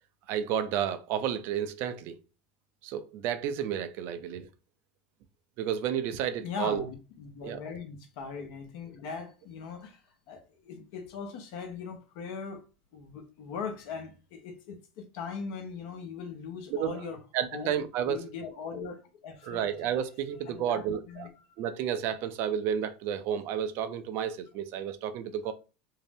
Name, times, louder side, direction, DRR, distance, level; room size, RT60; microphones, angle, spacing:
voice 1, 0.3-2.2 2.8-4.5 5.6-6.8 7.4-7.6 16.7-17.0 17.3-18.2 19.4-21.3 21.6-25.5, right 9 dB, 55° right, 0.4 m, -31 dB
voice 2, 6.4-10.0 10.3-12.6 12.9-17.2 17.5-17.7 18.1-20.0 20.5-21.7, left 5 dB, 65° left, 0.8 m, -40 dB
2.6 x 2.0 x 3.3 m
hypercardioid pair, 95°, 5 cm